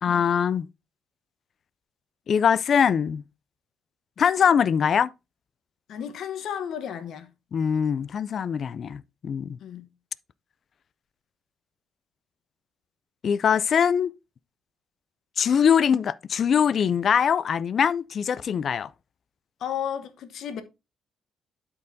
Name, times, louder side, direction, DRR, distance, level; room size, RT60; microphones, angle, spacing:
voice 1, 0.0-0.7 2.3-3.2 4.2-5.1 7.5-9.6 13.2-14.1 15.4-18.9, left 7 dB, 55° left, 0.3 m, -22 dB
voice 2, 5.9-7.3 9.6-9.9 19.6-20.6, left 9 dB, 70° left, 1.0 m, -33 dB
11.5 x 4.5 x 2.6 m
cardioid pair, 90°, 0 cm